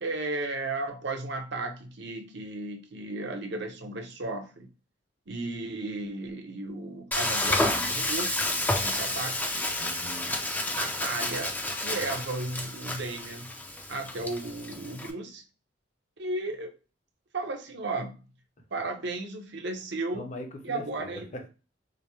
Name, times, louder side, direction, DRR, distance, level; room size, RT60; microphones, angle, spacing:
voice 1, 0.0-4.7 5.3-8.4 8.8-9.4 10.8-13.5 13.9-15.4 16.2-16.7 17.3-18.2 18.7-20.3 20.6-21.3, right 2 dB, 65° right, 0.8 m, -34 dB
Frying (food), 7.1-15.1, left 1 dB, 10° left, 0.5 m, -30 dB
voice 2, 9.8-10.4 20.1-21.5, left 1 dB, 40° left, 0.8 m, -41 dB
5.0 x 2.1 x 2.9 m
head